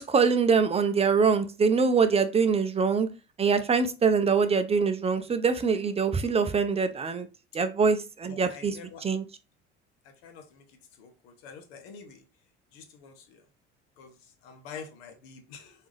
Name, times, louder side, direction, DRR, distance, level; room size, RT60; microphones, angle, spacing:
voice 1, 0.0-3.1 3.4-7.3 7.5-9.2, right 5 dB, 20° right, 9 dB, 0.5 m, -24 dB
voice 2, 8.3-9.0 10.2-10.6 11.0-12.2 12.7-13.1 14.0-14.1 14.4-15.7, left 6 dB, 70° left, 7 dB, 0.9 m, -46 dB
3.5 x 2.7 x 3.1 m, 0.31 s
hypercardioid pair, 65°, 33 cm